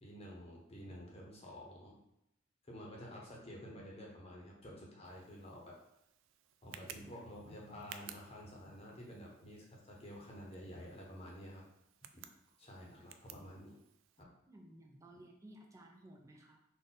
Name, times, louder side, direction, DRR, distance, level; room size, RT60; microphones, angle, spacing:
voice 1, 0.0-2.0 2.7-5.7 6.6-11.6 12.1-12.2 12.6-13.8 14.2-14.3, equal, 30° left, -2 dB, 1.0 m, -50 dB
Tick, 5.0-14.2, right 9 dB, 75° right, 0.3 m, -57 dB
voice 2, 14.5-16.6, right 1 dB, 15° right, 0 dB, 0.6 m, -57 dB
4.1 x 2.5 x 3.9 m, 0.81 s
head